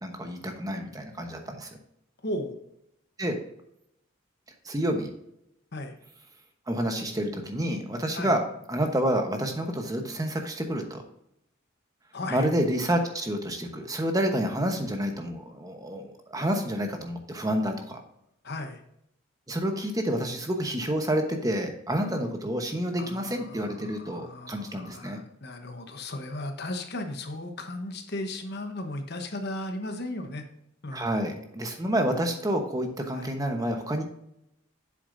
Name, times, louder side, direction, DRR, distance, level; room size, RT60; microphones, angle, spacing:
voice 1, 0.0-1.7 3.2-3.4 4.6-5.1 6.7-8.4 8.7-11.0 12.3-18.0 19.5-25.2 30.9-34.0, equal, 20° right, 4 dB, 1.0 m, -29 dB
voice 2, 2.2-2.6 5.7-5.9 8.1-8.3 12.1-12.5 18.4-18.8 23.0-30.5 30.8-31.1 33.1-33.4, left 1 dB, 55° left, 6 dB, 1.1 m, -36 dB
8.3 x 7.1 x 2.6 m, 0.77 s
head